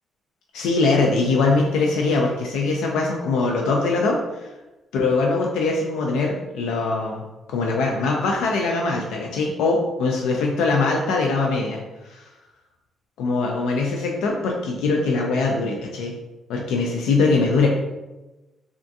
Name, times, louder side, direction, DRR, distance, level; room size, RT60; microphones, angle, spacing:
voice 1, 0.5-4.5 4.9-7.2 7.5-12.3 13.2-16.2 16.5-17.7, left 3 dB, 90° left, 0 dB, 0.3 m, -22 dB
3.4 x 2.4 x 2.6 m, 1.1 s
cardioid pair, 90°, 0 cm